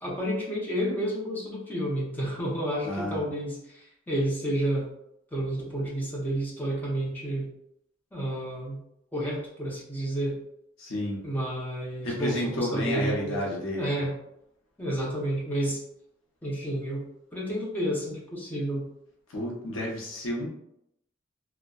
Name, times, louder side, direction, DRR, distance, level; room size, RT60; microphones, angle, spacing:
voice 1, 0.0-4.9 5.3-7.5 8.1-8.8 9.1-10.4 11.2-14.1 14.8-15.8 16.4-17.0 17.3-18.9, right 1 dB, 10° left, -4 dB, 0.6 m, -30 dB
voice 2, 2.8-3.3 10.8-11.2 12.0-14.0 19.3-20.5, left 1 dB, 85° left, -2 dB, 0.6 m, -31 dB
2.6 x 2.1 x 2.2 m, 0.77 s
head